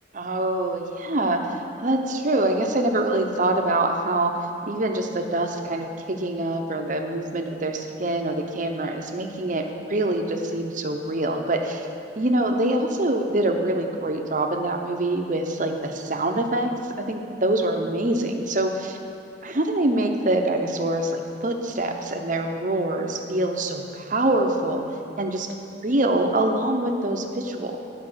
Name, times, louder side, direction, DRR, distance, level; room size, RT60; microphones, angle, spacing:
voice 1, 0.1-4.3 4.7-11.9 12.2-16.7 17.0-19.0 19.4-24.9 25.2-25.5 25.8-27.8, right 1 dB, 45° right, 3 dB, 0.9 m, -25 dB
12.0 x 5.3 x 7.9 m, 2.8 s
head